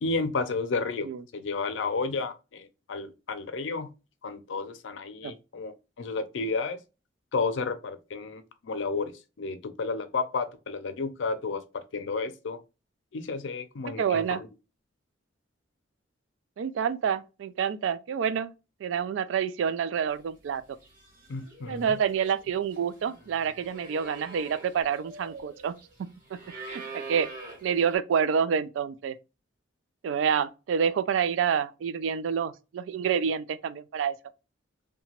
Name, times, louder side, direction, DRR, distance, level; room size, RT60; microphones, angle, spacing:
voice 1, 0.0-1.1 1.3-3.9 4.2-6.8 7.3-9.1 9.4-12.6 13.1-14.4 21.3-21.8, left 4 dB, 75° left, 0.4 m, -32 dB
voice 2, 14.0-14.4 16.6-18.5 18.8-20.6 21.7-25.7 26.3-26.4 26.7-27.3 27.6-29.1 30.0-34.1, right 7 dB, 80° right, 0.3 m, -28 dB
sound 1, 20.4-20.6 20.8-28.0, right 3 dB, 45° right, 1.1 m, -44 dB
2.8 x 2.2 x 2.8 m
head